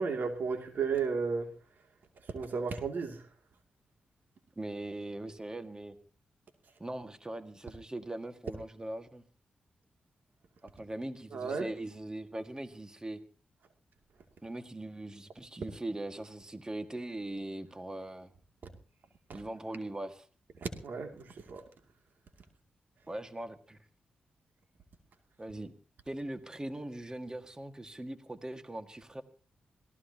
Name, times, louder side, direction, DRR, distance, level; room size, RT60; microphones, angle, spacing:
voice 1, 0.0-1.5 2.3-3.2 11.3-11.7 20.6-21.6, right 5 dB, 70° right, 2.6 m, -33 dB
voice 2, 4.6-6.0 6.8-9.2 10.6-13.2 14.4-18.3 19.3-20.3 23.1-23.8 25.4-25.7 26.1-29.2, right 1 dB, 20° right, 1.8 m, -40 dB
26.0 x 17.5 x 2.9 m
supercardioid pair, 50°, 3 cm